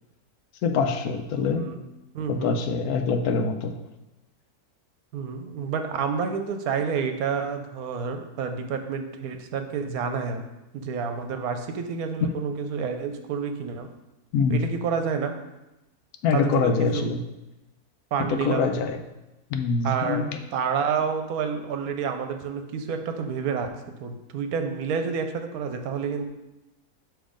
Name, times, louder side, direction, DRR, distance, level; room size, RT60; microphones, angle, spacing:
voice 1, 0.6-1.7 2.3-3.7 14.3-14.6 16.2-17.2 18.3-19.0 19.5-20.3, left 5 dB, 80° left, 6 dB, 1.1 m, -24 dB
voice 2, 1.3-1.8 2.1-2.6 3.2-3.3 5.1-10.4 10.7-13.9 14.5-15.3 16.3-17.1 18.1-18.7 19.8-20.2 20.5-23.7 24.0-26.3, right 6 dB, 75° right, 7 dB, 1.1 m, -29 dB
7.2 x 3.1 x 5.0 m, 0.98 s
omnidirectional pair, 1.6 m